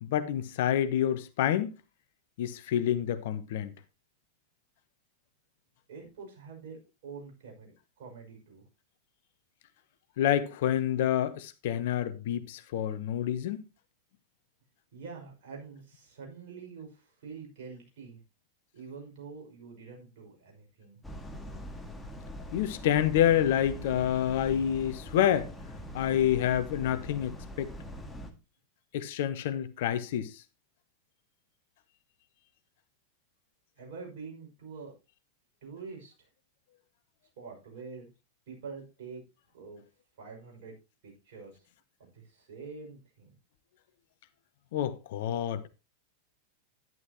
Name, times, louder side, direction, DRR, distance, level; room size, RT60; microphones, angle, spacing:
voice 1, 0.0-1.7 2.4-3.7 10.2-13.6 22.5-25.5 25.9-27.7 28.9-30.3 44.7-45.6, left 10 dB, 55° left, 1.0 m, -28 dB
voice 2, 5.9-8.6 14.9-18.2 18.7-21.0 33.8-34.9 35.6-36.3 37.4-38.1 38.5-39.2 39.5-39.8 40.2-40.8 41.0-41.7 42.0-43.3, right 5 dB, 55° right, 5.8 m, -46 dB
sound 1, 21.0-28.3, equal, 10° left, 1.9 m, -43 dB
11.0 x 11.0 x 2.9 m
figure-of-eight pair, 90°, 0 cm